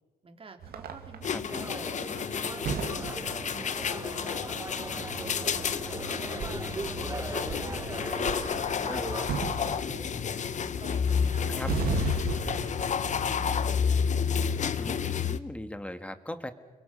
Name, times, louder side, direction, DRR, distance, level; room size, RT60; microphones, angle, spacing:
voice 1, 0.2-2.1 2.7-6.6 7.1-7.3 7.6-9.2 9.6-10.4 10.8-12.0 12.6-13.8, right 4 dB, 35° right, 4 dB, 3.2 m, -49 dB
sound 1, 0.6-15.1, right 7 dB, 80° right, 2.3 m, -39 dB
sound 2, 1.2-15.4, left 7 dB, 50° left, 0.9 m, -30 dB
sound 3, 1.5-9.3, right 3 dB, 20° right, 1.2 m, -40 dB
voice 2, 14.8-16.5, left 1 dB, 10° left, 9 dB, 1.6 m, -38 dB
29.5 x 23.0 x 6.8 m, 1.3 s
cardioid pair, 120°, 16 cm